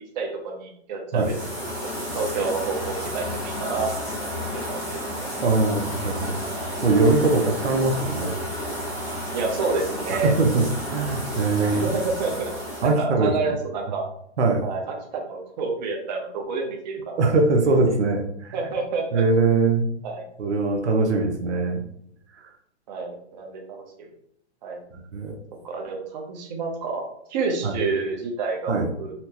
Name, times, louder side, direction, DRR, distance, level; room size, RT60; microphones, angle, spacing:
voice 1, 0.0-1.6 2.1-3.9 4.2-5.3 9.3-10.3 11.6-12.5 12.8-14.0 14.6-17.3 18.5-19.2 20.0-20.3 22.9-24.1 24.6-24.8 25.6-27.0 27.3-28.7 29.0-29.1, right 4 dB, 40° right, 1 dB, 0.7 m, -29 dB
sound 1, 1.2-12.9, equal, 5° right, 0.8 m, -31 dB
voice 2, 5.4-6.4 6.8-8.4 10.1-11.9 12.8-13.3 14.4-14.7 17.2-18.5 19.1-19.9 20.4-21.8 22.4-22.5 25.1-25.3 27.6-27.7 28.7-28.9, right 3 dB, 75° right, 3 dB, 0.8 m, -21 dB
4.2 x 2.1 x 2.8 m, 0.69 s
hypercardioid pair, 150°, 34 cm